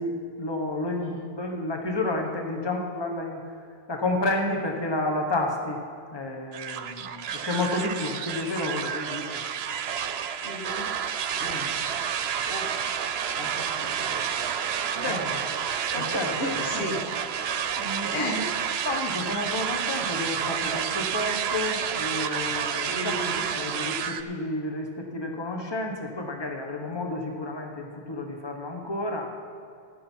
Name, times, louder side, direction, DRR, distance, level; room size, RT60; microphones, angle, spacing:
voice 1, 0.0-3.4 3.9-5.8 6.1-9.4 14.9-15.5 15.9-16.9 17.8-18.4 18.8-23.3 23.5-29.3, left 2 dB, 25° left, 2 dB, 1.4 m, -31 dB
sound 1, 6.5-24.2, right 8 dB, 80° right, 0.9 m, -30 dB
voice 2, 10.4-10.9 11.3-11.7 12.5-12.7 13.3-14.1 15.0-15.2 16.0-17.0 18.1-18.5 22.9-23.4, left 2 dB, 75° left, 1 dB, 1.8 m, -34 dB
14.5 x 11.0 x 4.6 m, 2.5 s
omnidirectional pair, 1.0 m